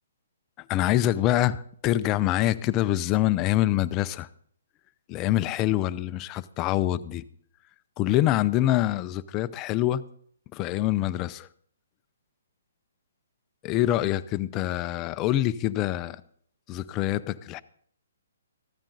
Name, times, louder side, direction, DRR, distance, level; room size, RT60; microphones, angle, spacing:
voice 1, 0.7-4.3 5.1-7.2 8.0-10.0 10.5-11.5 13.6-16.2 16.7-17.6, left 14 dB, 25° left, 14 dB, 0.5 m, -25 dB
14.5 x 12.5 x 4.0 m, 0.62 s
hypercardioid pair, 140°, 0 cm